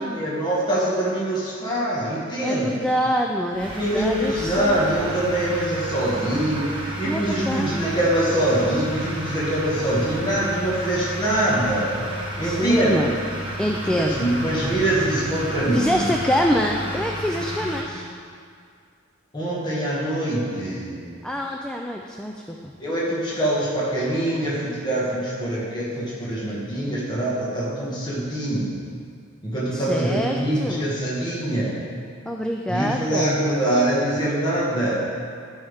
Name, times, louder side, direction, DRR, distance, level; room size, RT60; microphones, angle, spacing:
voice 1, 0.0-2.7 3.8-12.0 12.4-13.1 13.9-16.0 19.3-21.1 22.8-28.7 29.4-31.8 32.7-35.1, right 1 dB, 20° left, -7 dB, 1.5 m, -24 dB
voice 2, 2.4-4.9 7.0-7.9 12.4-13.2 13.6-14.3 15.7-18.1 21.2-22.7 29.7-30.9 32.3-33.4, equal, 5° left, 1 dB, 0.3 m, -25 dB
sound 1, 3.5-17.8, right 1 dB, 25° right, 1.4 m, -32 dB
sound 2, 10.2-11.1, equal, 45° right, 1.2 m, -39 dB
13.5 x 5.5 x 3.5 m, 2.2 s
head